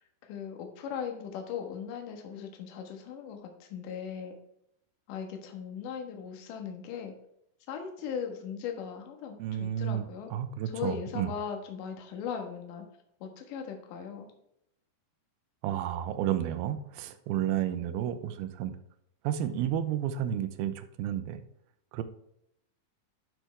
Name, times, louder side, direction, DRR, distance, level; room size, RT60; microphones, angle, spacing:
voice 1, 0.0-4.3 5.1-7.1 7.7-10.3 10.7-12.8 13.2-14.3, left 7 dB, 60° left, 4 dB, 2.7 m, -38 dB
voice 2, 9.4-10.1 10.3-11.3 15.6-18.8 19.2-21.5 21.9-22.0, right 10 dB, 80° right, 10 dB, 2.6 m, -31 dB
12.0 x 6.1 x 3.4 m, 0.75 s
omnidirectional pair, 4.7 m